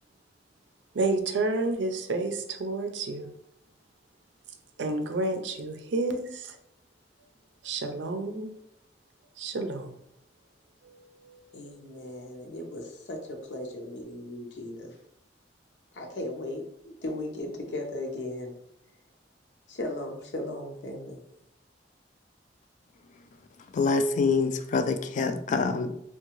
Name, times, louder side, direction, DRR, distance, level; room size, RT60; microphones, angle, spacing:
voice 1, 0.9-3.3 4.8-6.6 7.6-8.5 9.4-9.9 10.9-11.0 11.3-11.4, right 2 dB, 85° right, 6 dB, 0.5 m, -30 dB
voice 2, 11.5-15.0 15.9-18.6 19.7-21.2, left 1 dB, 80° left, 2 dB, 0.7 m, -37 dB
voice 3, 23.7-25.9, left 4 dB, 45° left, 8 dB, 0.3 m, -25 dB
3.6 x 2.2 x 3.0 m, 0.76 s
head